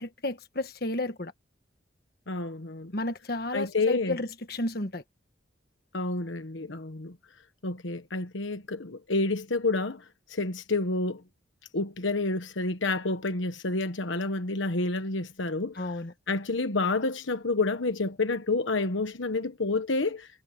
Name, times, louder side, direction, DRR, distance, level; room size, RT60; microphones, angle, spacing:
voice 1, 0.0-1.3 2.9-5.0 15.7-16.1, left 2 dB, 50° left, 1.5 m, -32 dB
voice 2, 2.3-2.9 3.5-4.2 5.9-7.1 7.6-10.0 10.3-11.2 11.7-15.8 16.3-20.3, left 3 dB, 80° left, 1.3 m, -29 dB
head